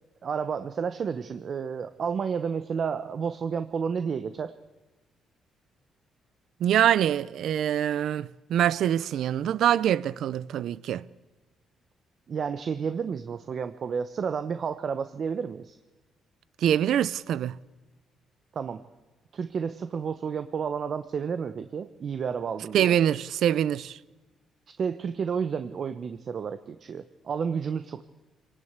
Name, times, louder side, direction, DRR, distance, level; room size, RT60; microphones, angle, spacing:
voice 1, 0.2-4.5 12.3-15.8 18.5-18.8 19.3-23.0 24.8-28.1, right 6 dB, 50° right, 1.0 m, -31 dB
voice 2, 6.6-11.1 16.6-17.6 22.7-24.0, right 10 dB, 75° right, 0.7 m, -24 dB
26.5 x 19.0 x 8.2 m
cardioid pair, 90°, 0 cm